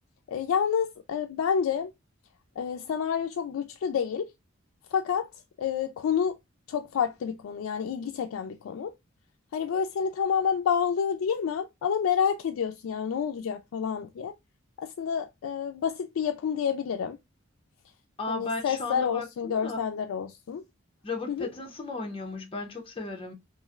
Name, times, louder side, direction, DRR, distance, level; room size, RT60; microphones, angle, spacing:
voice 1, 0.3-1.9 2.6-4.3 4.9-5.3 5.6-6.3 6.7-8.9 9.5-14.3 14.8-17.2 18.3-20.6 21.3-21.5, left 7 dB, 90° left, 0.3 m, -29 dB
voice 2, 18.2-19.8 21.0-23.3, left 3 dB, 25° left, 0.6 m, -35 dB
3.0 x 2.5 x 2.3 m
head